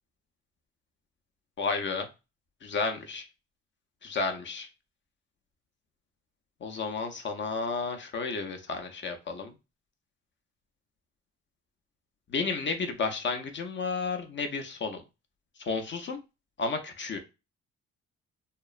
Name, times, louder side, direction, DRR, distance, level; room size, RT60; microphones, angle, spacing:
voice 1, 1.6-2.1 2.6-3.2 4.0-4.7 6.6-9.5 12.3-15.0 15.7-16.2 16.6-17.2, left 4 dB, 40° left, 6 dB, 0.5 m, -32 dB
2.9 x 2.0 x 2.3 m, 0.27 s
cardioid pair, 90°, 30 cm